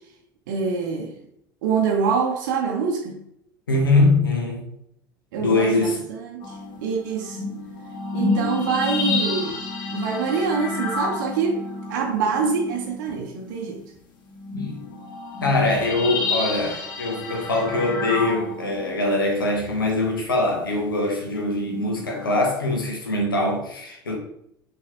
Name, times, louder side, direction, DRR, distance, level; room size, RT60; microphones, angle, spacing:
voice 1, 0.5-1.1 1.6-3.2 5.3-6.6 6.8-7.5 8.1-9.6 9.9-11.6 11.9-13.8, right 5 dB, 60° right, 0.7 m, -25 dB
voice 2, 3.7-4.6 5.4-6.0 14.5-14.8 15.4-24.2, left 2 dB, 80° left, 1.0 m, -22 dB
sound 1, 6.4-13.5 13.9-14.0 14.3-19.3 21.5-22.4, left 3 dB, 40° left, 1.1 m, -30 dB
5.7 x 3.1 x 2.9 m
figure-of-eight pair, 65°, 11 cm